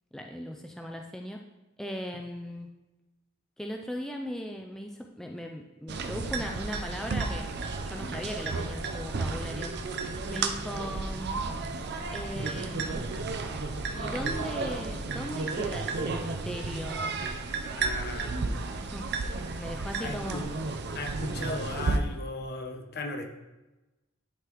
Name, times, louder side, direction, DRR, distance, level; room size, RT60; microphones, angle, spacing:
voice 1, 0.1-1.4 1.8-2.7 3.6-7.5 7.8-9.7 10.3-11.4 12.1-13.0 14.0-17.0 18.9-19.1 19.6-20.4, equal, ahead, 1 dB, 0.3 m, -38 dB
sound 1, 5.9-22.0, right 3 dB, 55° right, 0.5 m, -33 dB
sound 2, 9.7-16.0, left 1 dB, 20° left, 1.2 m, -51 dB
voice 2, 17.8-18.5 20.0-20.4 20.9-23.2, left 2 dB, 50° left, 4 dB, 0.9 m, -37 dB
11.0 x 3.9 x 3.0 m, 1.0 s
head